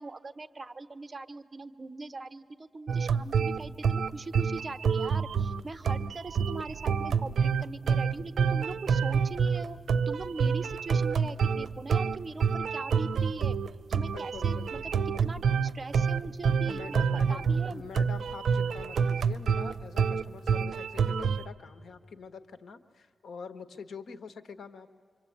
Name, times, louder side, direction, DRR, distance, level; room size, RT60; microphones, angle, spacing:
voice 1, 0.0-9.8 10.1-13.6 13.9-14.8 15.2-17.8, right 3 dB, 35° right, 10 dB, 1.0 m, -41 dB
sound 1, 2.9-21.4, right 6 dB, 80° right, 0.6 m, -27 dB
voice 2, 14.1-15.5 16.7-24.9, left 5 dB, 80° left, 11 dB, 1.3 m, -45 dB
26.5 x 25.0 x 8.6 m, 2.1 s
wide cardioid pair, 125°, 0 cm